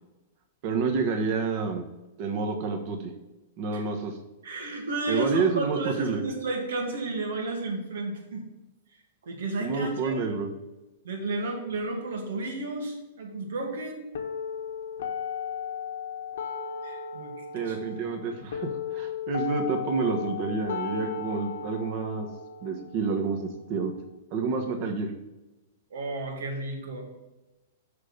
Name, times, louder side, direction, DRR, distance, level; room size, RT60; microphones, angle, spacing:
voice 1, 0.6-1.8 2.2-3.1 3.6-4.2 5.1-6.2 9.6-10.5 17.5-22.3 22.6-23.9 24.3-25.1, right 4 dB, 40° right, 4 dB, 1.3 m, -29 dB
voice 2, 4.4-8.5 9.2-10.2 11.0-14.1 16.8-18.0 25.9-27.1, right 2 dB, 90° right, 2 dB, 2.1 m, -32 dB
sound 1, 14.1-24.1, left 7 dB, 80° left, 1.2 m, -36 dB
6.6 x 5.2 x 6.5 m, 1.1 s
supercardioid pair, 155°, 0 cm